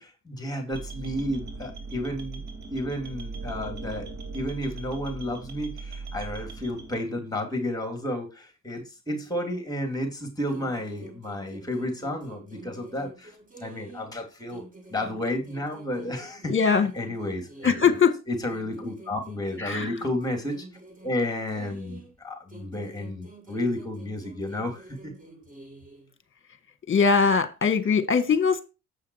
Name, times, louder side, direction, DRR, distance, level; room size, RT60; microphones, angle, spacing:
voice 1, 0.0-2.5 2.7-17.9 18.3-20.7 21.0-25.1, left 1 dB, 10° left, 3.3 m, -32 dB
sound 1, 0.7-7.0, right 4 dB, 60° right, 2.7 m, -39 dB
sound 2, 10.5-14.2 14.5-18.1 18.5-22.2 22.5-26.1, right 2 dB, 25° right, 3.1 m, -48 dB
voice 2, 16.5-16.9 17.6-18.1 19.6-19.9 26.9-28.6, left 5 dB, 40° left, 1.5 m, -21 dB
8.2 x 5.7 x 4.8 m
cardioid pair, 70°, 33 cm